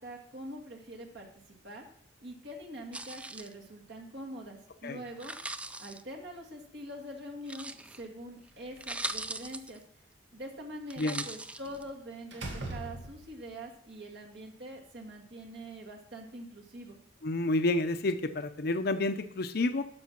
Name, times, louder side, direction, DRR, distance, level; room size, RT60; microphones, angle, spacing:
voice 1, 0.0-1.9 2.2-5.4 5.8-9.8 10.3-17.0, right 1 dB, 65° right, 0 dB, 2.0 m, -44 dB
sound 1, 2.9-3.5 5.1-6.0 7.5-8.0 8.5-8.6 8.8-9.8 10.9-11.8, right 2 dB, 5° right, 0.4 m, -39 dB
Slam, 8.5-9.5 11.6-11.9 12.3-13.5, right 2 dB, 90° right, 2.0 m, -41 dB
voice 2, 17.2-19.8, left 2 dB, 60° left, 9 dB, 0.7 m, -29 dB
12.0 x 6.2 x 6.0 m, 0.65 s
head